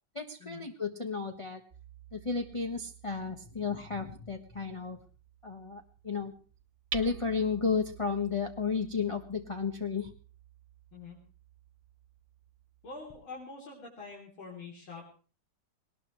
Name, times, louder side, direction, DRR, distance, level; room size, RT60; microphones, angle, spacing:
voice 1, 0.1-1.6 2.1-5.0 5.4-6.3 6.9-10.1, left 5 dB, 20° left, 4 dB, 1.1 m, -33 dB
Hammer, 1.7-13.4, right 8 dB, 70° right, 0.5 m, -49 dB
voice 2, 12.8-15.1, left 4 dB, 80° left, -4 dB, 4.3 m, -45 dB
20.5 x 19.0 x 3.2 m, 0.37 s
omnidirectional pair, 2.2 m